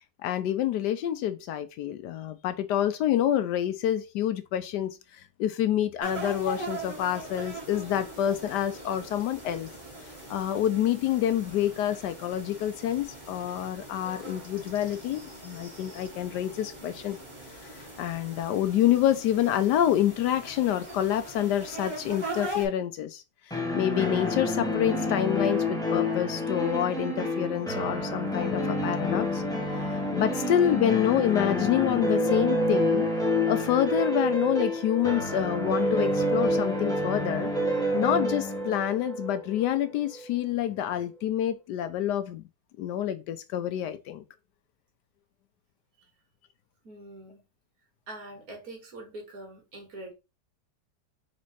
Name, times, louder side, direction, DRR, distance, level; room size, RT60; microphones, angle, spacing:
voice 1, 0.2-5.0 5.4-9.7 10.3-17.2 18.0-23.2 23.7-29.4 29.9-33.1 33.5-37.5 37.9-42.4 42.8-44.2, left 11 dB, 75° left, 1.1 m, -27 dB
sound 1, 6.0-22.7, right 1 dB, 15° right, 2.0 m, -41 dB
sound 2, 23.5-40.2, left 1 dB, 5° left, 0.8 m, -28 dB
voice 2, 46.8-47.4 48.1-50.1, right 2 dB, 55° right, 2.0 m, -43 dB
4.1 x 3.2 x 4.1 m
omnidirectional pair, 1.9 m